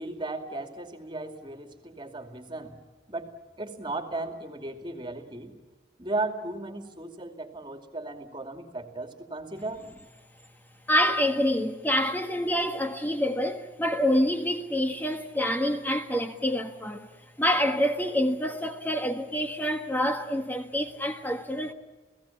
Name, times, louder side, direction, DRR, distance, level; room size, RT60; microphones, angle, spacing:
voice 1, 0.0-2.8 3.1-5.6 6.0-9.8, right 2 dB, 25° right, 2.5 m, -36 dB
voice 2, 10.9-17.1 17.4-21.7, equal, 10° left, 1.6 m, -27 dB
29.5 x 17.5 x 7.3 m
head